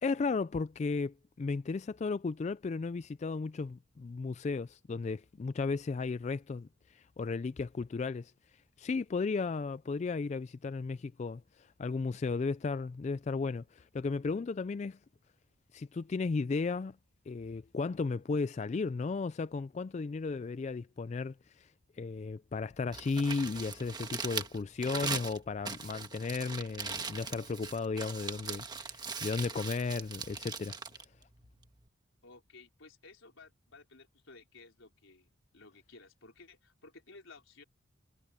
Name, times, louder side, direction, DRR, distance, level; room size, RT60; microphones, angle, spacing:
voice 1, 0.0-8.3 8.8-15.0 15.7-17.0 17.3-21.7 22.0-30.8, left 4 dB, 35° left, 0.3 m, -35 dB
Crumpling crinkling, 22.8-31.9, right 5 dB, 20° right, 1.4 m, -40 dB
voice 2, 32.2-37.6, left 3 dB, 80° left, 4.2 m, -56 dB
head